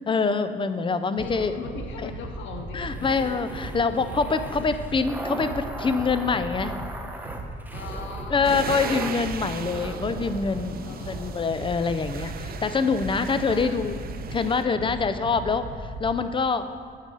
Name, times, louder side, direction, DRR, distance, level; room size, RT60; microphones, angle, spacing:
voice 1, 0.1-1.5 2.0-2.1 2.7-6.8 8.3-14.0 14.3-16.7, left 4 dB, 25° left, 10 dB, 0.4 m, -25 dB
voice 2, 1.2-3.4 7.7-8.8 10.8-11.3 13.4-15.0, left 5 dB, 70° left, 4 dB, 0.7 m, -40 dB
sound 1, 1.2-16.2, right 2 dB, 85° right, 1.2 m, -37 dB
sound 2, 2.8-11.3, right 1 dB, 10° right, 0.7 m, -39 dB
sound 3, 8.4-14.6, right 8 dB, 50° right, 0.4 m, -38 dB
9.3 x 4.8 x 3.9 m, 2.3 s
cardioid pair, 90°, 20 cm